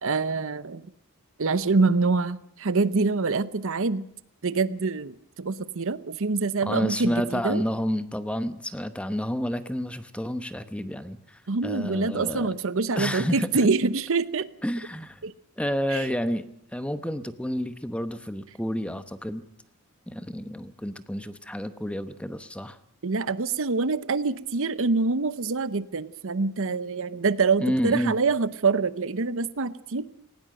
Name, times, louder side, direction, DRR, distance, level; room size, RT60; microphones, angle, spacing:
voice 1, 0.0-0.8 1.4-4.0 4.4-7.6 11.5-14.5 15.2-15.3 15.9-16.1 23.0-30.0, right 4 dB, 60° right, 15 dB, 0.8 m, -25 dB
voice 2, 6.6-12.5 13.0-13.7 14.6-15.2 15.6-16.4 16.7-19.4 20.1-22.8 27.6-28.1, equal, 5° left, 11 dB, 0.9 m, -30 dB
19.0 x 18.0 x 7.7 m, 0.66 s
head